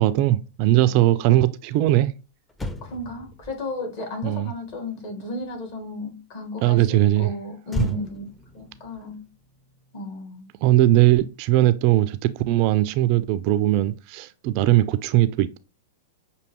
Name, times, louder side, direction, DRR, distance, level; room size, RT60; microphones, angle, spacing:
voice 1, 0.0-2.1 4.2-4.5 6.6-7.3 7.8-7.9 10.6-15.6, right 15 dB, 45° right, 0.3 m, -19 dB
Motor vehicle (road), 2.5-6.0 7.7-10.3 10.5-10.8, left 2 dB, 10° left, 0.5 m, -36 dB
voice 2, 2.8-9.3 9.9-10.5, left 2 dB, 50° left, 1.7 m, -34 dB
6.2 x 2.7 x 3.1 m
figure-of-eight pair, 95°, 0 cm